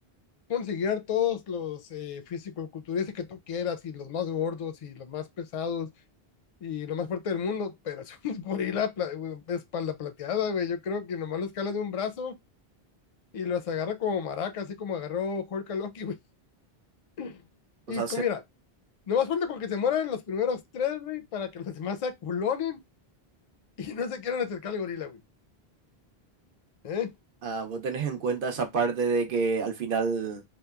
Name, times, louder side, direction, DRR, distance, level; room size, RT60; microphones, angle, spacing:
voice 1, 0.5-5.9 6.6-12.3 13.3-16.2 17.2-17.4 17.9-18.4 19.1-22.8 23.8-25.2 26.8-27.1, left 7 dB, 55° left, 0.4 m, -31 dB
voice 2, 17.9-18.2 27.4-30.4, right 4 dB, 60° right, 0.8 m, -28 dB
2.9 x 2.1 x 2.2 m
omnidirectional pair, 1.0 m